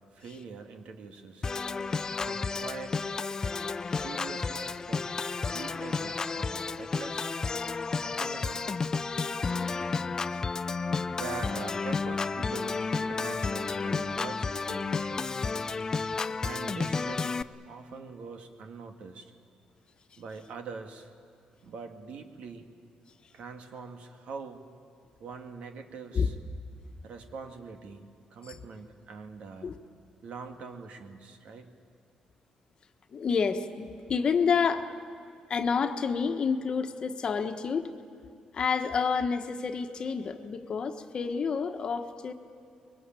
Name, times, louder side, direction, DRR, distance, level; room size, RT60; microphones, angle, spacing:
voice 1, 0.1-1.5 2.2-3.0 3.9-5.1 5.5-7.3 8.0-8.6 11.1-15.3 16.4-19.3 20.2-21.1 21.6-22.7 23.3-24.6 25.2-26.3 27.0-29.7 30.2-31.7, right 5 dB, 70° right, 5 dB, 2.1 m, -43 dB
Organ, 1.4-17.4, left 4 dB, 30° left, 0.6 m, -32 dB
voice 2, 33.1-34.9 35.5-37.9 38.5-42.3, left 6 dB, 45° left, 7 dB, 1.3 m, -29 dB
24.0 x 22.0 x 9.1 m, 2.5 s
cardioid pair, 120°, 2 cm